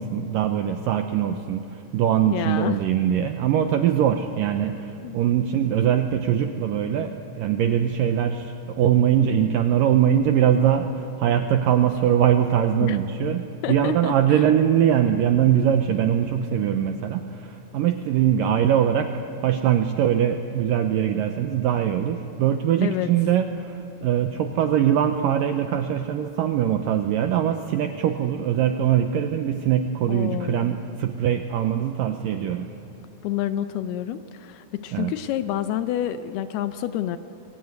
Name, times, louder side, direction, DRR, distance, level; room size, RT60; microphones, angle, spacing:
voice 1, 0.0-19.1 19.4-32.7 34.9-35.1, right 9 dB, 80° right, 7 dB, 2.0 m, -22 dB
voice 2, 2.3-2.8 5.0-5.2 12.8-13.0 13.6-14.4 22.8-23.1 30.1-30.7 33.2-37.2, left 11 dB, 80° left, 11 dB, 2.5 m, -28 dB
25.5 x 22.5 x 9.4 m, 2.6 s
omnidirectional pair, 5.0 m